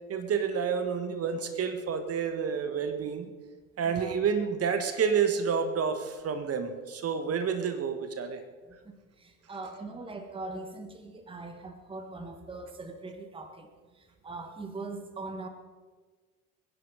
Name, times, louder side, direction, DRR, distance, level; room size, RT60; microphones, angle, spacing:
voice 1, 0.1-3.3 3.8-8.4, right 6 dB, 30° right, 8 dB, 1.5 m, -29 dB
voice 2, 3.8-4.1 8.7-13.7 14.0-15.5, right 3 dB, 10° right, 7 dB, 1.4 m, -41 dB
23.0 x 10.5 x 5.0 m, 1.4 s
figure-of-eight pair, 70°, 45 cm